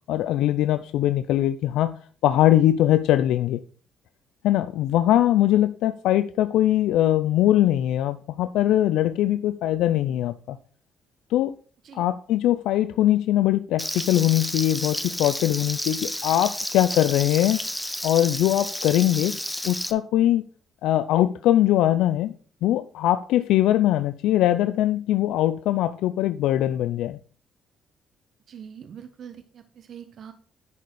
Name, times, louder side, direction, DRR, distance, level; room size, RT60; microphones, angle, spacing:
voice 1, 0.1-1.9 2.2-3.6 4.4-10.6 11.3-11.5 11.9-17.6 18.0-19.3 19.6-20.4 20.8-22.3 22.6-27.2, left 13 dB, 90° left, 0.3 m, -21 dB
Frying (food), 13.8-19.9, equal, 5° left, 0.8 m, -31 dB
voice 2, 28.5-30.3, right 8 dB, 60° right, 0.8 m, -43 dB
10.5 x 4.3 x 4.6 m
cardioid pair, 90°, 0 cm